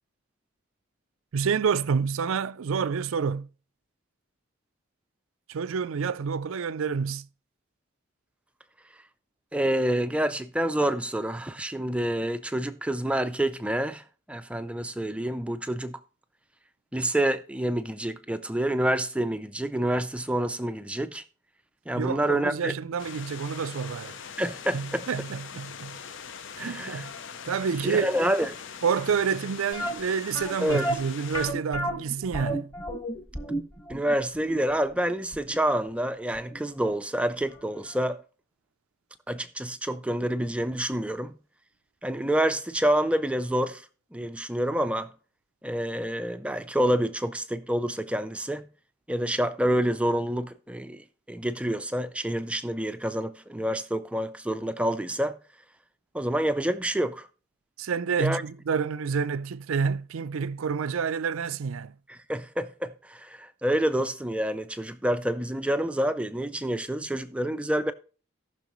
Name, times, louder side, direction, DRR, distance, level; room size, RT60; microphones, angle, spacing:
voice 1, 1.3-3.5 5.5-7.3 22.0-24.2 24.7-26.0 26.6-27.1 27.4-28.1 28.8-32.7 57.8-61.9, right 6 dB, 70° right, 0.4 m, -28 dB
voice 2, 9.5-16.0 16.9-21.2 21.9-22.7 24.4-25.0 26.6-27.0 27.8-28.6 30.6-30.9 33.9-38.2 39.3-41.3 42.0-43.9 44.1-45.1 45.6-48.6 49.1-55.4 56.1-57.3 58.2-58.4 62.1-67.9, right 1 dB, 5° right, 0.4 m, -28 dB
sound 1, 23.0-31.5, left 7 dB, 55° left, 0.6 m, -42 dB
sound 2, 29.7-36.6 36.9-37.0 37.5-37.7 37.9-38.0, right 1 dB, 20° left, 1.5 m, -33 dB
17.5 x 6.1 x 3.1 m
head